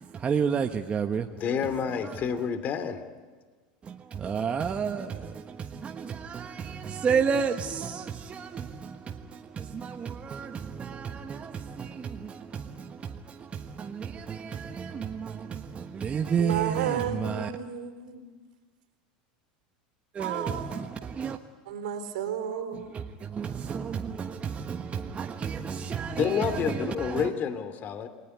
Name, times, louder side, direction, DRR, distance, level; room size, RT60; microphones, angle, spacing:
voice 1, 0.0-1.6 1.9-2.5 3.8-17.5 20.1-21.4 22.7-27.3, right 6 dB, 30° right, 1.4 m, -32 dB
voice 2, 1.4-3.0 26.1-28.1, left 7 dB, 45° left, 2.7 m, -29 dB
voice 3, 16.4-18.3 20.2-20.8 21.7-23.0, right 8 dB, 75° right, 4.1 m, -32 dB
28.5 x 20.5 x 9.6 m
hypercardioid pair, 90°, 4 cm